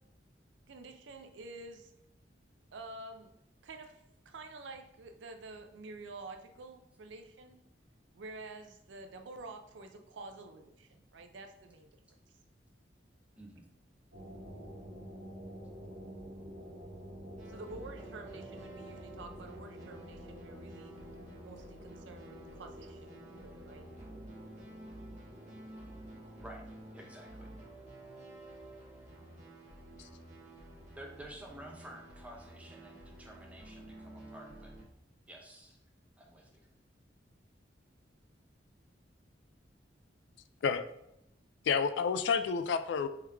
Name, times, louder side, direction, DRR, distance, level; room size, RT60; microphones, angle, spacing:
voice 1, 0.7-1.9 2.7-3.3 3.6-7.6 8.1-11.9 17.5-20.9 21.4-23.2 23.4-23.8, right 2 dB, 85° right, 6 dB, 0.5 m, -49 dB
voice 2, 13.4-13.7 26.4-26.6 26.9-27.5 31.0-34.7 35.3-35.8 36.2-36.6, right 1 dB, 10° right, -1 dB, 0.7 m, -51 dB
sound 1, 14.1-31.5, equal, 65° right, 1.0 m, -51 dB
sound 2, 17.4-34.8, right 1 dB, 45° right, 1.3 m, -51 dB
voice 3, 41.6-43.1, left 6 dB, 70° left, 11 dB, 0.3 m, -30 dB
3.5 x 3.2 x 3.4 m, 0.83 s
head